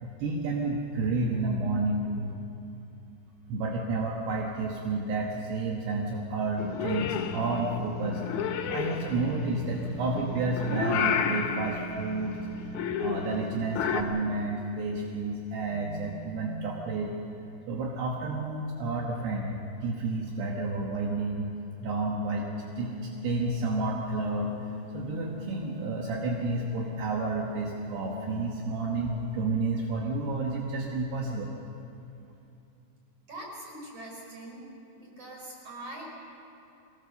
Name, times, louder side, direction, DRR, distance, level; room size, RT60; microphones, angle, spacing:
voice 1, 0.0-2.3 3.5-12.4 13.0-17.1 17.7-21.5 21.8-22.5 22.8-24.5 24.9-31.5, right 3 dB, 75° right, -1 dB, 3.4 m, -30 dB
Purr / Meow, 6.6-14.0, left 7 dB, 70° left, 1.9 m, -32 dB
sound 1, 22.6-29.4, left 3 dB, 50° right, 4.3 m, -42 dB
voice 2, 33.3-34.7 35.0-36.1, right 1 dB, 35° right, -2 dB, 5.1 m, -42 dB
22.5 x 18.5 x 6.8 m, 2.7 s
omnidirectional pair, 4.9 m